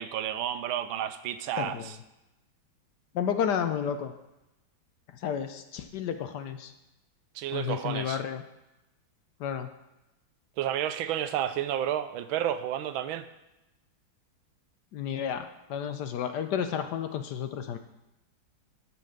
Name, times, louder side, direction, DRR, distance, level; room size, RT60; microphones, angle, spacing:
voice 1, 0.0-2.0 7.3-8.2 10.6-13.3, right 11 dB, 90° right, 11 dB, 1.4 m, -31 dB
voice 2, 1.6-1.9 3.1-4.1 5.2-6.7 7.5-8.4 9.4-9.7 14.9-17.8, left 8 dB, 70° left, 8 dB, 1.1 m, -31 dB
11.0 x 4.7 x 6.5 m, 0.97 s
omnidirectional pair, 2.1 m